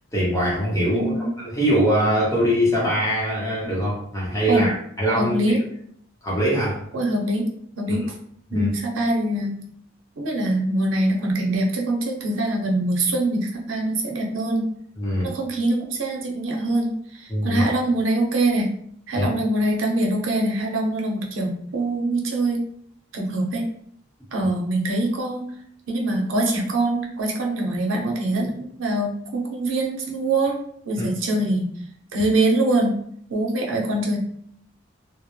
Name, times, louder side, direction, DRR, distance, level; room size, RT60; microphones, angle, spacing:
voice 1, 0.1-5.6 6.2-6.8 8.5-8.7 15.0-15.3 17.3-17.6 19.1-19.3 24.4-24.5 31.0-31.1, equal, 15° left, -6 dB, 0.8 m, -22 dB
voice 2, 0.9-1.3 4.5-4.7 5.1-5.6 6.9-7.5 7.8-8.1 8.5-9.6 10.2-14.7 15.2-16.9 17.2-18.7 19.1-22.6 23.1-23.6 24.3-25.5 25.9-30.6 30.9-31.7 32.1-33.0 33.3-34.2, right 1 dB, 75° right, 0 dB, 0.6 m, -23 dB
2.1 x 2.0 x 3.0 m, 0.66 s
head